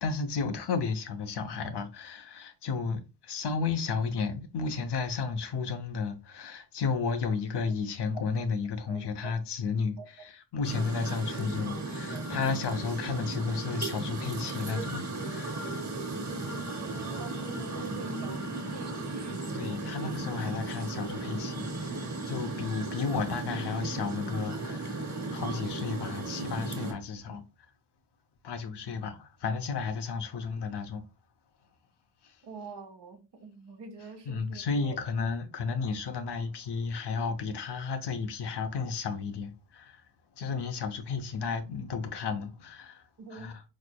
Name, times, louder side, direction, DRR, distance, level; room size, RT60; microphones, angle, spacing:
voice 1, 0.0-15.7 19.5-27.4 28.4-31.0 32.2-32.4 34.3-40.1 40.4-43.6, left 5 dB, 70° left, 0.7 m, -33 dB
voice 2, 8.9-9.3 10.0-10.1 12.1-12.2 17.2-19.4 32.4-35.0 43.2-43.5, right 3 dB, 70° right, 1.1 m, -45 dB
sound 1, 10.6-26.9, right 2 dB, 40° right, 1.3 m, -35 dB
4.1 x 3.2 x 2.2 m
cardioid pair, 50°, 43 cm